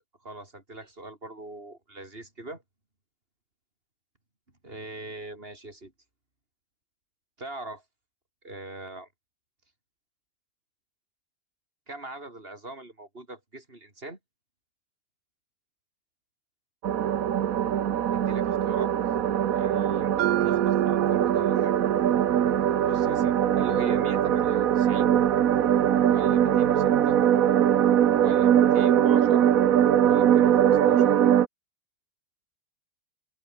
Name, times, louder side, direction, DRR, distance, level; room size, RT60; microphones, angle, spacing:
voice 1, 0.2-2.6 4.6-5.9 7.4-7.8 8.4-9.1 11.9-14.2 18.1-18.9 19.5-21.7 22.8-25.1 26.1-27.2 28.2-29.5 30.0-31.2, right 2 dB, 35° right, 5.1 m, -42 dB
sound 1, 16.8-31.5, right 10 dB, 65° right, 1.3 m, -22 dB
Mallet percussion, 20.2-24.2, right 14 dB, 85° right, 1.2 m, -31 dB
open air
omnidirectional pair, 1.7 m